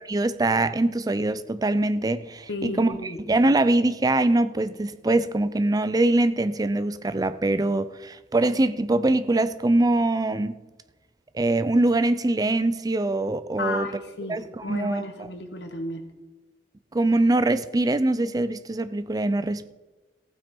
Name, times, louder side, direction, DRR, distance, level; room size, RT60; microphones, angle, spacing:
voice 1, 0.1-10.5 11.3-13.9 14.3-15.3 16.9-19.7, right 2 dB, 20° right, 0.4 m, -23 dB
voice 2, 2.5-3.2 13.6-14.4 14.6-16.0, left 2 dB, 85° left, 1.5 m, -33 dB
15.0 x 8.8 x 4.5 m
head